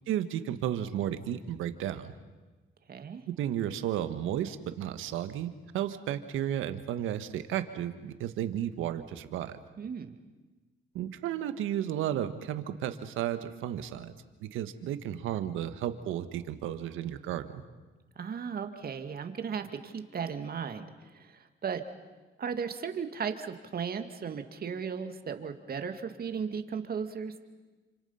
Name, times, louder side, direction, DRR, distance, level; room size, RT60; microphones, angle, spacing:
voice 1, 0.1-2.1 3.3-9.5 10.9-14.1 14.4-17.6, right 11 dB, 90° right, 10 dB, 1.5 m, -33 dB
voice 2, 2.9-3.2 9.8-10.1 18.2-21.8 22.4-27.4, right 6 dB, 50° right, 7 dB, 2.2 m, -36 dB
29.0 x 26.5 x 5.8 m, 1.3 s
cardioid pair, 90°, 20 cm